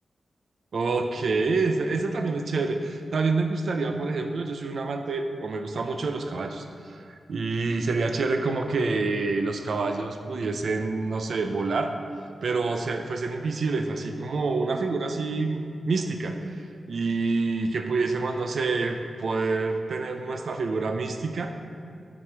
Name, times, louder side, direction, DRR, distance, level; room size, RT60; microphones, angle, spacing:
voice 1, 0.7-11.9 12.4-21.5, right 3 dB, 75° right, 6 dB, 0.5 m, -27 dB
7.5 x 6.1 x 4.7 m, 2.4 s
wide cardioid pair, 100°, 0 cm